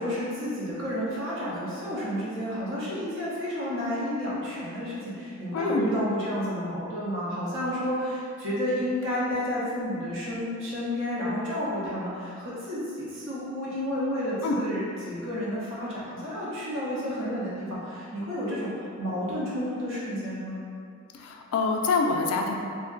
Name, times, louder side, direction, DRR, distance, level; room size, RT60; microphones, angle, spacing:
voice 1, 0.0-20.6, equal, 65° right, -8 dB, 0.8 m, -31 dB
voice 2, 5.5-5.9 14.4-14.6 21.1-22.6, left 4 dB, 90° left, 2 dB, 0.3 m, -26 dB
2.6 x 2.1 x 3.7 m, 2.4 s
head